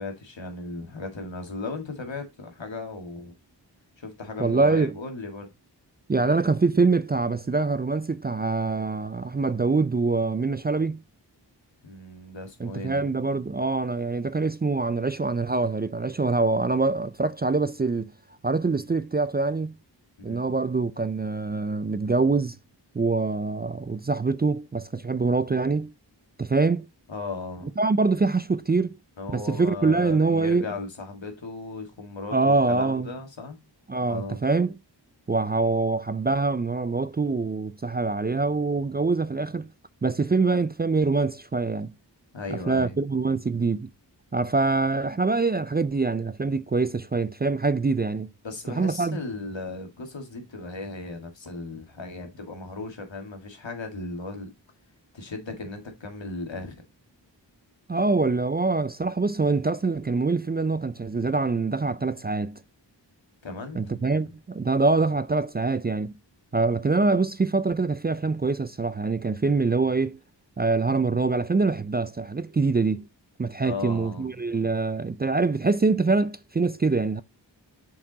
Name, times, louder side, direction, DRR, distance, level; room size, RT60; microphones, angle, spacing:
voice 1, 0.0-3.3 4.0-5.5 11.8-13.1 20.3-20.4 27.1-27.8 29.2-33.6 34.1-34.4 42.3-43.0 48.4-54.5 55.1-56.8 63.4-64.0 73.6-74.4, left 3 dB, 90° left, 1.9 m, -36 dB
voice 2, 4.4-4.9 6.1-11.0 12.6-18.1 18.4-19.8 20.2-22.6 22.9-25.9 26.4-26.9 27.8-29.0 29.3-30.7 32.3-33.1 33.9-34.7 35.3-39.7 40.0-41.9 42.5-43.9 44.3-48.3 48.7-49.2 57.9-62.6 63.7-66.1 66.5-70.2 70.6-73.1 73.4-77.2, right 3 dB, 25° right, 0.3 m, -24 dB
7.2 x 4.8 x 3.8 m
wide cardioid pair, 60°, 44 cm